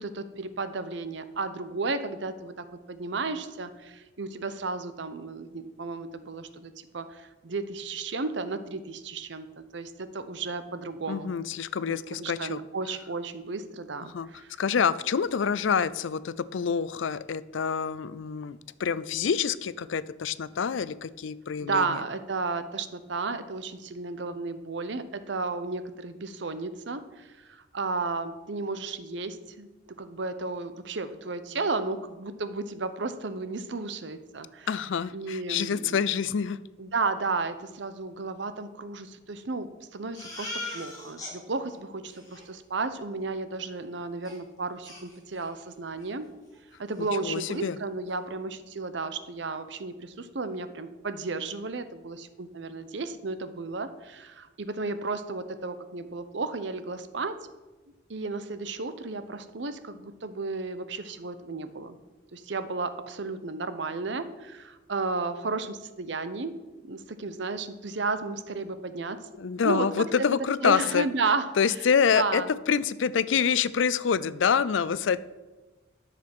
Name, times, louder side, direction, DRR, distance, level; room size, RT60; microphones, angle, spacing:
voice 1, 0.0-9.5 9.7-11.3 11.9-14.5 21.6-34.7 35.1-36.0 36.8-46.3 46.8-57.4 58.1-62.0 62.3-66.5 66.8-69.2 69.6-69.9 70.2-70.3 70.6-71.5 71.8-71.9 72.1-72.5, right 3 dB, 65° right, 11 dB, 0.7 m, -33 dB
voice 2, 11.1-12.6 14.1-14.3 14.6-22.0 34.7-36.6 47.2-47.8 69.4-71.1 71.6-75.2, left 6 dB, 75° left, 17 dB, 0.4 m, -27 dB
Crying sobbing, 40.1-41.3 41.7-41.8 42.0-42.4 44.2-44.3 44.8-45.6 46.0-46.1 46.5-46.6 46.9-47.6, left 2 dB, 20° left, 3.5 m, -40 dB
10.5 x 6.8 x 6.0 m, 1.2 s
head